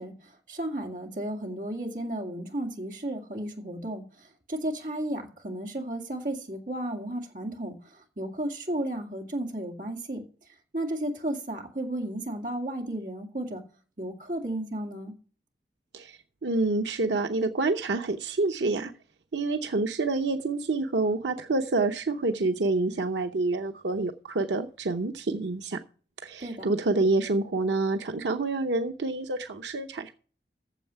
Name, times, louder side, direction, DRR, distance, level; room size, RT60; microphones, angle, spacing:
voice 1, 0.0-10.2 10.7-13.6 14.0-15.1 26.4-26.7, right 1 dB, 45° right, 2.3 m, -34 dB
voice 2, 15.9-18.9 19.3-25.8 26.2-30.1, right 3 dB, 90° right, 0.8 m, -27 dB
9.1 x 7.3 x 6.9 m
head